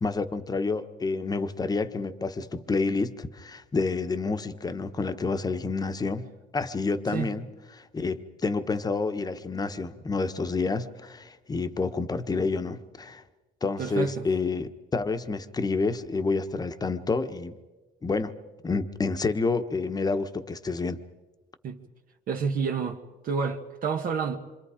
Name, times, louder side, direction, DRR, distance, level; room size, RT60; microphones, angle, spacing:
voice 1, 0.0-6.3 6.5-7.4 7.7-13.2 13.6-17.5 18.0-18.3 18.6-21.0, left 4 dB, 20° left, 1.2 m, -29 dB
voice 2, 13.8-14.2 21.6-21.8 22.3-23.0 23.2-24.4, right 5 dB, 55° right, 1.5 m, -29 dB
27.0 x 25.5 x 5.1 m
cardioid pair, 110°, 17 cm